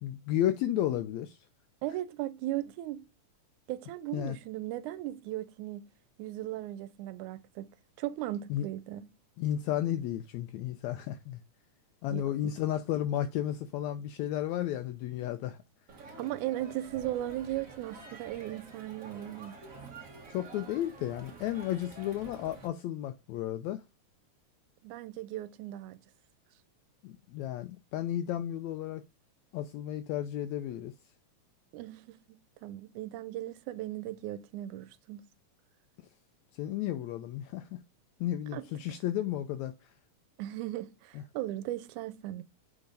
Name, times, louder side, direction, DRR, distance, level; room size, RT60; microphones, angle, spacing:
voice 1, 0.0-1.4 4.1-4.4 8.5-8.7 9.4-11.4 12.0-15.6 20.3-23.8 27.0-29.0 29.5-30.9 36.5-37.8 38.2-39.9, left 12 dB, 80° left, 1.7 m, -33 dB
voice 2, 1.8-3.1 3.7-5.9 6.2-7.7 8.0-9.1 12.1-12.2 16.2-19.6 24.8-26.0 31.7-35.2 38.5-38.7 40.4-42.4, right 14 dB, 85° right, 2.1 m, -37 dB
Crowd, 15.9-22.7, right 4 dB, 60° right, 0.8 m, -48 dB
6.9 x 3.5 x 5.2 m
omnidirectional pair, 3.5 m